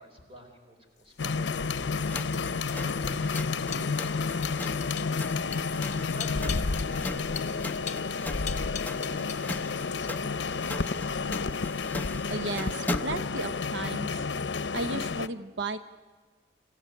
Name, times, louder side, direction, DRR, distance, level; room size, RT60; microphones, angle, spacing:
voice 1, 0.0-1.6 2.1-5.0 6.1-10.5, right 1 dB, 30° right, 3 dB, 4.3 m, -48 dB
sound 1, 1.1-9.6 9.9-10.4, left 9 dB, 40° left, 1.2 m, -42 dB
sound 2, 1.2-15.3, left 4 dB, 85° left, 0.7 m, -31 dB
sound 3, 2.0-13.3, left 1 dB, 10° left, 0.6 m, -40 dB
voice 2, 12.3-14.3 14.7-15.8, right 2 dB, 85° right, 12 dB, 0.7 m, -34 dB
26.5 x 15.0 x 9.5 m, 1.4 s
head